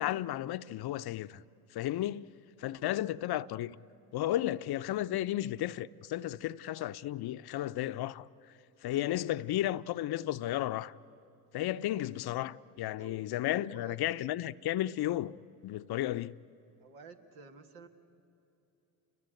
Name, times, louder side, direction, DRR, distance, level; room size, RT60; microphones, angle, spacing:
voice 1, 0.0-1.4 1.7-2.2 2.6-3.8 4.1-8.3 8.8-10.9 11.5-15.4 15.6-16.3, left 14 dB, 50° left, 0.7 m, -33 dB
voice 2, 2.7-3.1 13.0-14.0 16.8-17.9, right 4 dB, 80° right, 1.8 m, -53 dB
28.5 x 22.0 x 9.1 m
hypercardioid pair, 60°, 49 cm